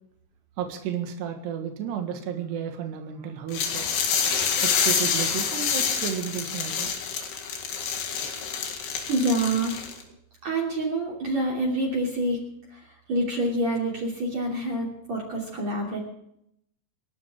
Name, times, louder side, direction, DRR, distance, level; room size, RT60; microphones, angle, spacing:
voice 1, 0.6-4.0 4.6-6.9, right 8 dB, 80° right, 4 dB, 3.7 m, -32 dB
sound 1, 3.5-10.0, left 6 dB, 75° left, 4.1 m, -27 dB
voice 2, 9.0-9.8 10.4-12.4 12.7-16.0, right 1 dB, 45° right, -3 dB, 3.9 m, -27 dB
28.5 x 11.5 x 3.7 m, 0.76 s
omnidirectional pair, 4.9 m